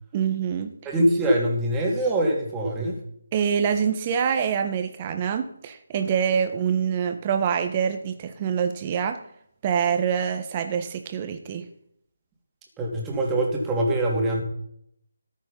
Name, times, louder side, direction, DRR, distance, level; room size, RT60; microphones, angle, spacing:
voice 1, 0.1-0.7 3.3-9.2 9.6-11.7, right 7 dB, 25° right, 7 dB, 1.6 m, -25 dB
voice 2, 0.8-3.0 12.8-14.4, right 1 dB, 10° right, -2 dB, 3.0 m, -23 dB
14.0 x 9.5 x 5.5 m, 0.70 s
figure-of-eight pair, 160°, 0 cm